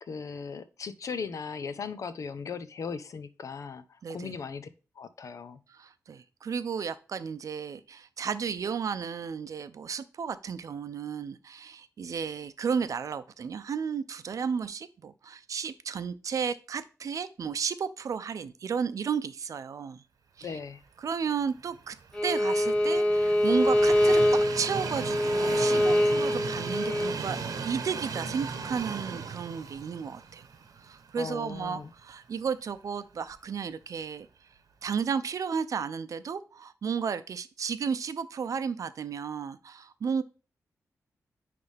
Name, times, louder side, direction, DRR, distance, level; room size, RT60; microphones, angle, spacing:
voice 1, 0.1-4.7 5.0-5.6 20.4-20.8 31.2-31.9, left 5 dB, 65° left, 12 dB, 0.7 m, -38 dB
voice 2, 4.0-4.3 5.7-20.0 20.4-20.6 21.0-21.9 22.2-30.4 30.8-34.3 34.8-40.2, right 6 dB, 65° right, 12 dB, 0.6 m, -33 dB
Train, 21.5-31.7 32.1-32.2 33.3-33.4, right 5 dB, 85° right, 1.0 m, -37 dB
Bowed string instrument, 22.1-27.1, left 1 dB, 15° left, 1.0 m, -24 dB
9.5 x 3.4 x 3.4 m, 0.35 s
wide cardioid pair, 135°, 6 cm